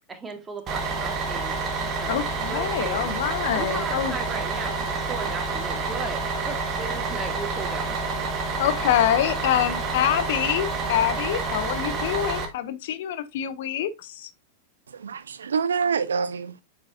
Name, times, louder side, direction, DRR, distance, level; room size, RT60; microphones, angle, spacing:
voice 1, 0.1-1.6 2.0-3.1 3.5-8.3, right 4 dB, 15° right, 1.5 m, -37 dB
Bus, 0.7-12.4, right 4 dB, 30° right, 1.4 m, -28 dB
voice 2, 2.1-4.1 8.6-14.3, left 11 dB, 55° left, 0.7 m, -25 dB
voice 3, 14.9-16.6, right 6 dB, 70° right, 0.5 m, -26 dB
8.0 x 5.0 x 2.5 m
figure-of-eight pair, 90°, 0 cm